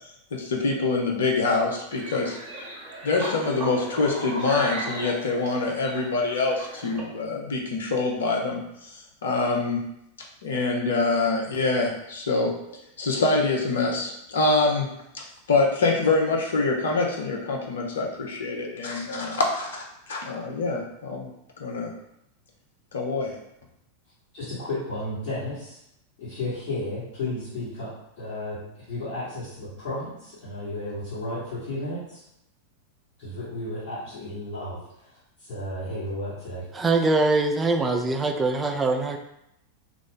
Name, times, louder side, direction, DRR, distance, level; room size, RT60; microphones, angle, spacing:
voice 1, 0.3-2.4 3.0-8.9 9.2-9.8 10.4-12.5 13.0-14.9 15.1-21.3 21.6-21.9 22.9-23.4, left 3 dB, 65° left, 0 dB, 0.6 m, -25 dB
sound 1, 1.9-7.0, right 2 dB, 40° right, 0.9 m, -36 dB
voice 2, 24.3-25.8 26.2-28.6 28.9-32.2 33.2-36.7, left 1 dB, 45° left, -12 dB, 1.3 m, -33 dB
voice 3, 36.7-39.2, right 3 dB, 15° right, 3 dB, 0.3 m, -23 dB
2.4 x 2.0 x 3.7 m, 0.80 s
figure-of-eight pair, 90°, 0 cm